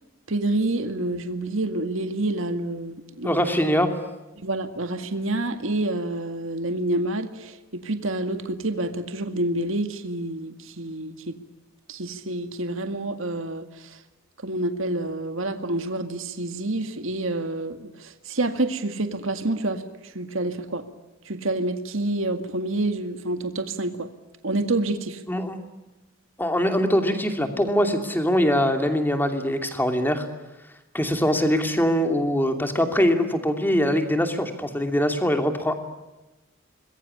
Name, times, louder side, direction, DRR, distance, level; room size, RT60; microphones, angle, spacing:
voice 1, 0.3-3.4 4.4-11.4 11.9-14.0 14.4-20.8 21.3-24.1 24.4-25.2, right 2 dB, 70° right, 7 dB, 2.0 m, -28 dB
voice 2, 3.2-3.9 25.3-25.6 26.4-30.3 30.9-35.7, equal, 10° left, 6 dB, 2.8 m, -22 dB
26.0 x 21.5 x 9.9 m, 1.1 s
head